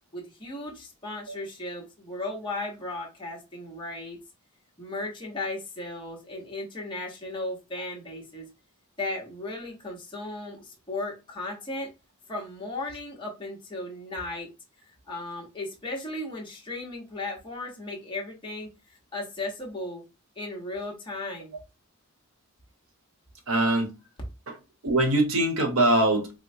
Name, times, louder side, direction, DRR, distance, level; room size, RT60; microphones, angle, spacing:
voice 1, 0.1-4.2 4.8-8.5 9.0-11.9 12.3-14.5 15.1-20.0 20.4-21.5, left 2 dB, 20° left, 1.0 m, -36 dB
voice 2, 23.5-23.9 24.8-26.3, right 1 dB, 65° right, 0.9 m, -22 dB
4.5 x 2.1 x 2.6 m
head